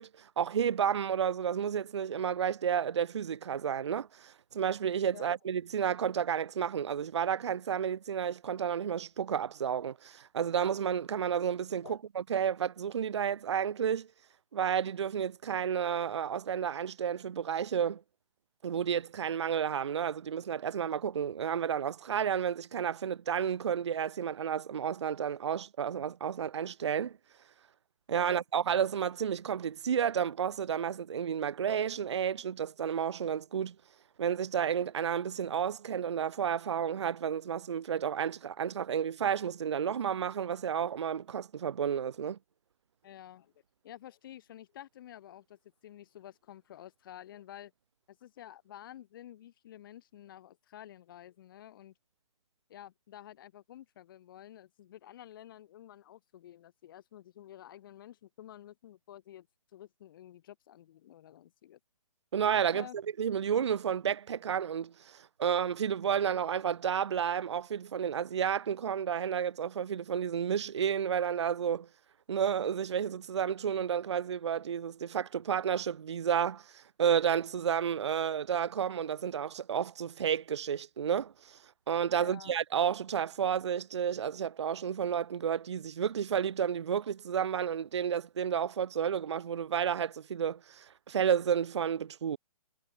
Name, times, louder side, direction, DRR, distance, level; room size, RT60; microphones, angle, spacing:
voice 1, 0.0-14.1 14.5-18.0 18.6-27.2 28.1-33.7 34.2-42.4 62.3-62.9 63.2-71.9 72.3-81.6 81.9-92.4, right 8 dB, 50° right, 0.5 m, -31 dB
voice 2, 43.0-43.5 43.8-47.7 48.1-51.9 52.7-61.8 62.7-63.0 82.1-82.5, left 12 dB, 35° left, 5.6 m, -51 dB
figure-of-eight pair, 135°, 19 cm